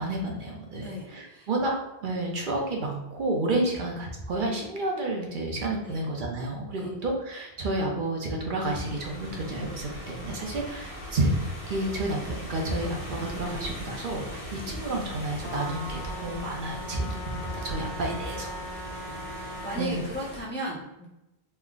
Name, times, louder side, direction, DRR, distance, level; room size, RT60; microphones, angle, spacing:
voice 1, 0.0-1.7 2.0-11.3 11.7-18.6 19.8-20.0, right 2 dB, 60° right, 0 dB, 0.7 m, -30 dB
voice 2, 0.8-1.5 3.7-3.8 5.9-6.0 6.8-6.9 19.0-21.0, equal, 15° left, -4 dB, 0.5 m, -37 dB
sound 1, 8.6-20.4, equal, 60° left, 1.1 m, -40 dB
Trumpet, 15.4-19.8, equal, 85° left, 1.2 m, -39 dB
3.3 x 2.1 x 3.6 m, 0.94 s
omnidirectional pair, 1.1 m